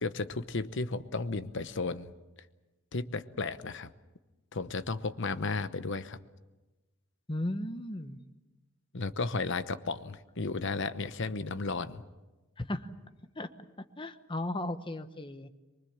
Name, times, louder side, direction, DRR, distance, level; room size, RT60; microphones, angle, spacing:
voice 1, 0.0-2.1 2.9-3.9 4.5-6.2 8.9-12.0, left 3 dB, 60° left, 13 dB, 0.9 m, -34 dB
voice 2, 7.3-8.2 12.6-12.9 13.4-13.5 14.0-15.5, left 1 dB, 25° left, 10 dB, 1.0 m, -35 dB
24.0 x 23.5 x 7.3 m, 1.1 s
head